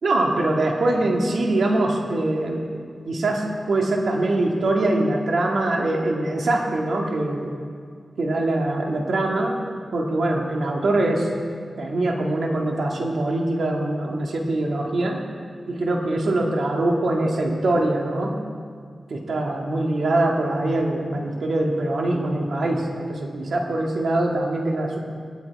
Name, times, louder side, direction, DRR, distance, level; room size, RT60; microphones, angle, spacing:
voice 1, 0.0-2.6 3.1-7.5 8.2-9.6 9.9-11.3 11.8-15.2 15.7-18.4 19.1-25.0, right 2 dB, 80° right, 0 dB, 1.8 m, -23 dB
18.5 x 11.0 x 4.7 m, 2.1 s
wide cardioid pair, 105°, 0 cm